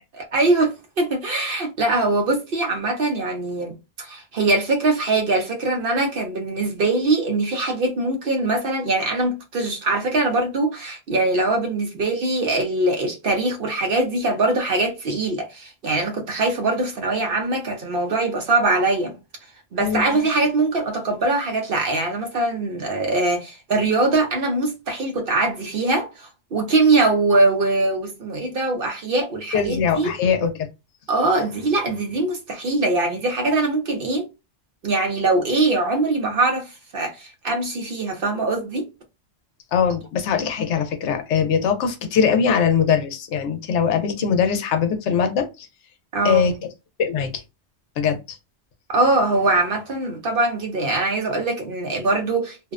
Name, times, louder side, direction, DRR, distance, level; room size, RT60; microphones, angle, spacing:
voice 1, 0.1-19.1 19.7-30.1 31.1-34.3 34.8-38.9 46.1-46.5 48.9-52.7, right 2 dB, 60° right, 0.7 m, -22 dB
voice 2, 29.5-30.7 39.7-45.7 46.2-46.5 47.0-47.4 48.0-48.4, left 7 dB, 80° left, 0.9 m, -21 dB
2.5 x 2.1 x 2.3 m
omnidirectional pair, 1.2 m